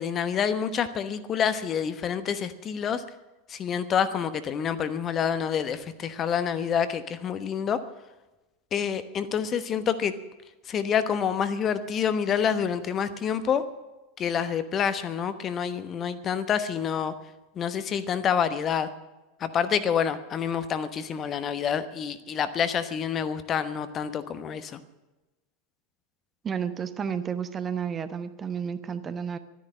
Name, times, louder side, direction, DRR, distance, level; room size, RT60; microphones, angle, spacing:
voice 1, 0.0-3.0 3.5-7.8 8.7-10.1 10.7-13.6 14.2-17.1 17.6-18.9 19.4-24.8, left 7 dB, 30° left, 12 dB, 1.0 m, -27 dB
voice 2, 26.4-29.4, right 7 dB, 25° right, 11 dB, 0.9 m, -31 dB
13.0 x 10.5 x 8.8 m, 1.1 s
figure-of-eight pair, 80°, 0 cm